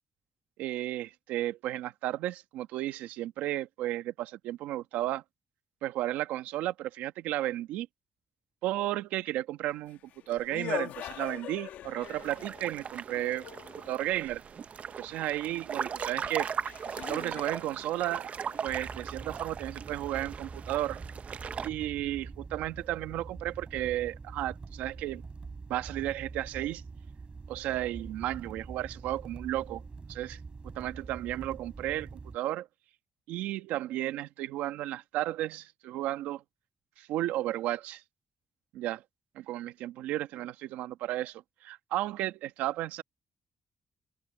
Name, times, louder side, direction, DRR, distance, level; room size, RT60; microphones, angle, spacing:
voice 1, 0.6-5.2 5.8-7.9 8.6-10.0 10.3-13.4 13.9-14.4 15.0-16.5 17.1-18.3 18.6-21.0 21.6-25.2 25.7-26.8 27.5-29.8 30.1-30.4 30.7-32.7 33.3-36.4 37.0-38.0 38.7-39.0 39.3-43.0, right 14 dB, 90° right, 1.3 m, -33 dB
sound 1, 9.8-14.1 16.0-16.1 16.6-19.1, left 11 dB, 80° left, 2.1 m, -42 dB
sound 2, 12.0-21.7, right 7 dB, 60° right, 1.0 m, -39 dB
sound 3, 18.7-32.4, right 4 dB, 40° right, 4.9 m, -45 dB
supercardioid pair, 50°, 3 cm